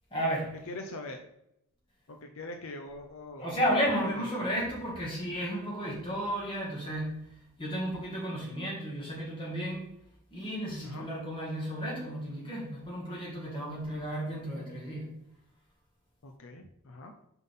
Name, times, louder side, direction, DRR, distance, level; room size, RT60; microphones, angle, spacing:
voice 1, 0.1-0.5 3.4-7.3 7.6-9.9 10.3-15.2, equal, 25° left, -4 dB, 2.2 m, -33 dB
voice 2, 0.7-1.2 2.1-3.5 4.0-4.4 10.8-11.1 16.2-17.1, left 2 dB, 75° left, 4 dB, 0.6 m, -42 dB
5.8 x 5.5 x 3.7 m, 0.79 s
head